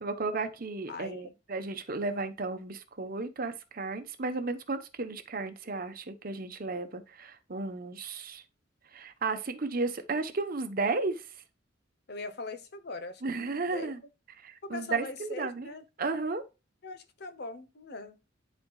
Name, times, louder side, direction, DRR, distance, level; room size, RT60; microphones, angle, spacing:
voice 1, 0.0-8.4 8.9-11.3 13.2-14.0 14.4-15.7 16.0-16.4, right 3 dB, 50° right, 0.9 m, -34 dB
voice 2, 0.9-1.3 12.1-13.9 14.6-15.8 16.8-18.2, left 3 dB, 60° left, 0.9 m, -41 dB
11.0 x 4.4 x 2.3 m
head